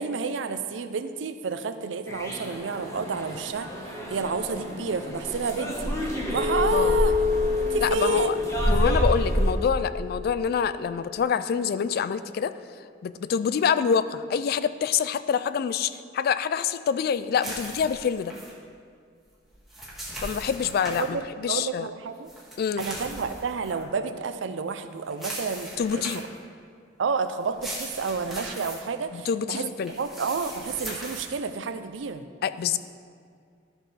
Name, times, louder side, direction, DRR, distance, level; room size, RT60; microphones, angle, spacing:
voice 1, 0.0-3.7 4.1-5.9 6.3-7.1 7.6-8.4 21.0-22.3 22.8-26.0 27.0-29.6 30.0-32.2, right 5 dB, 85° right, 10 dB, 0.5 m, -30 dB
sound 1, 2.1-9.5, equal, 15° left, 1.3 m, -29 dB
Chink clink, 6.4-10.9, left 5 dB, 30° right, 1.1 m, -28 dB
voice 2, 7.8-8.4 8.7-12.5 13.0-18.3 20.2-21.9 22.6-22.9 25.8-26.2 29.1-29.9 32.4-32.8, left 7 dB, 55° left, 13 dB, 0.3 m, -26 dB
turning pages, 17.4-18.5 19.5-21.1 22.3-23.8 25.1-26.4 27.4-28.8 29.8-31.3, right 1 dB, ahead, 1.8 m, -39 dB
12.5 x 6.1 x 3.3 m, 2.2 s
head